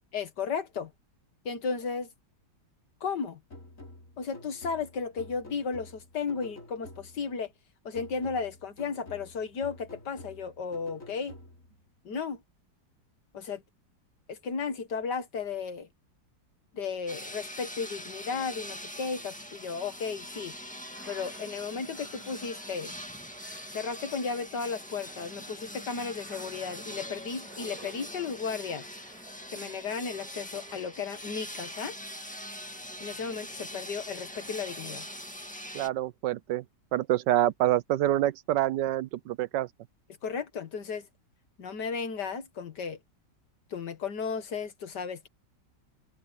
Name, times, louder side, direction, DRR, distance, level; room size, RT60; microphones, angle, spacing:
voice 1, 0.1-0.9 1.5-2.1 3.0-3.4 4.2-7.5 7.9-11.4 12.1-12.4 13.3-13.6 14.3-15.9 16.7-20.5 21.1-22.9 23.7-28.9 29.5-32.0 33.0-35.1 40.2-41.1 41.6-43.0 43.7-45.3, left 5 dB, 70° left, 2.2 m, -34 dB
sound 1, 3.5-7.4 7.9-11.8, left 2 dB, 45° left, 3.9 m, -49 dB
sound 2, 17.1-35.9, equal, 5° left, 1.8 m, -43 dB
sound 3, 20.8-29.9 30.3-31.3, right 4 dB, 55° right, 3.4 m, -56 dB
voice 2, 35.7-36.6 36.9-39.7, right 14 dB, 80° right, 1.3 m, -26 dB
omnidirectional pair, 1.9 m